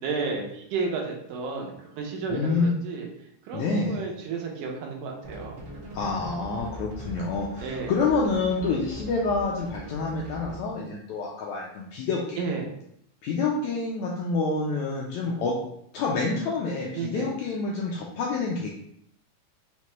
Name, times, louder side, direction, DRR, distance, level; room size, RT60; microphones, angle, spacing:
voice 1, 0.0-3.1 3.5-5.6 7.6-7.9 12.4-12.7 17.0-17.3, right 4 dB, 85° right, 0 dB, 2.3 m, -32 dB
voice 2, 2.3-2.7 3.5-4.0 5.9-12.4 13.2-15.5 15.9-18.7, left 4 dB, 85° left, -2 dB, 1.6 m, -27 dB
sound 1, 5.2-10.8, equal, 65° right, 1.3 m, -40 dB
5.7 x 2.2 x 3.0 m, 0.72 s
omnidirectional pair, 3.7 m